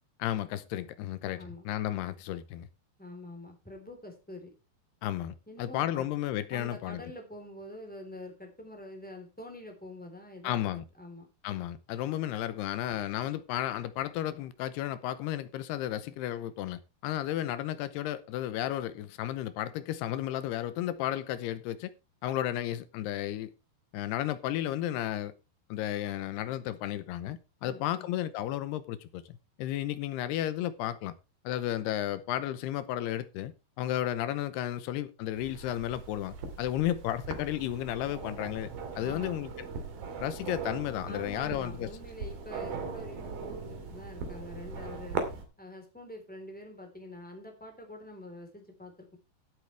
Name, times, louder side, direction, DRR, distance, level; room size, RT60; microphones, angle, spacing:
voice 1, 0.2-2.7 5.0-7.0 10.4-10.8 11.4-21.9 22.2-23.5 23.9-25.3 25.7-31.1 31.4-33.5 33.8-38.7 39.0-39.5 40.2-41.9, left 12 dB, 80° left, 2.8 m, -33 dB
voice 2, 3.0-4.5 5.5-6.1 6.5-10.6 11.0-11.3 27.6-28.1 39.0-39.4 41.0-45.2 45.6-49.2, left 1 dB, ahead, 3.1 m, -46 dB
sound 1, 35.4-45.4, right 5 dB, 65° right, 4.1 m, -39 dB
16.5 x 8.3 x 3.4 m
omnidirectional pair, 4.8 m